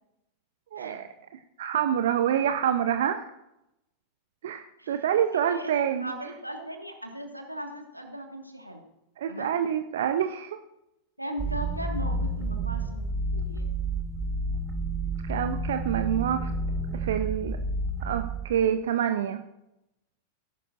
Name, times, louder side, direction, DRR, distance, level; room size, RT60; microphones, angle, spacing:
voice 1, 0.7-3.2 4.4-6.1 9.2-10.6 15.2-16.5 16.9-17.6 18.0-19.4, right 9 dB, 60° right, 8 dB, 0.6 m, -27 dB
voice 2, 5.3-8.8 9.3-9.6 11.2-13.1 13.3-13.7, equal, 90° right, 3 dB, 1.8 m, -38 dB
sound 1, 11.4-18.5, right 2 dB, 15° right, 1.7 m, -30 dB
18.5 x 11.5 x 2.6 m, 0.89 s
figure-of-eight pair, 90°, 0 cm